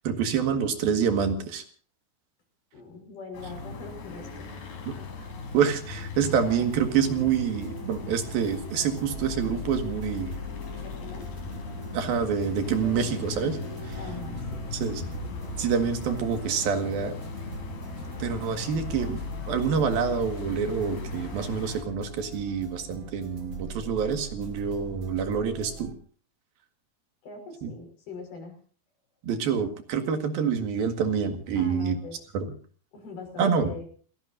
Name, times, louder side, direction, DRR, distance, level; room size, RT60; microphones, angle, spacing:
voice 1, 0.1-1.6 4.9-5.0 5.5-10.3 11.9-13.6 13.9-14.0 14.7-15.0 15.6-17.2 18.2-19.2 19.5-25.9 27.6-27.7 29.2-32.0 32.3-32.5 33.4-33.7, right 7 dB, 70° right, 8 dB, 3.6 m, -27 dB
voice 2, 2.7-4.5 10.8-11.3 13.9-14.7 27.2-28.6 31.6-32.2 32.9-33.9, left 4 dB, 70° left, 4 dB, 7.3 m, -42 dB
sound 1, 3.3-21.8, left 3 dB, 90° left, 6.2 m, -38 dB
sound 2, 6.7-25.9, left 1 dB, 30° right, 3.1 m, -41 dB
28.5 x 17.0 x 2.7 m, 0.42 s
omnidirectional pair, 4.5 m